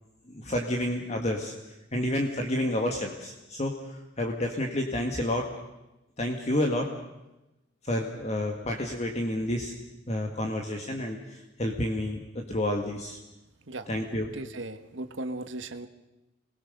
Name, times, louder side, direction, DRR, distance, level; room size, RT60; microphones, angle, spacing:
voice 1, 0.3-1.5 1.9-5.5 6.2-6.9 7.8-9.7 10.1-13.2 13.9-14.3, left 1 dB, 35° left, 2 dB, 1.9 m, -30 dB
voice 2, 14.3-15.9, right 2 dB, 75° right, 8 dB, 1.4 m, -37 dB
28.0 x 21.0 x 6.7 m, 0.97 s
head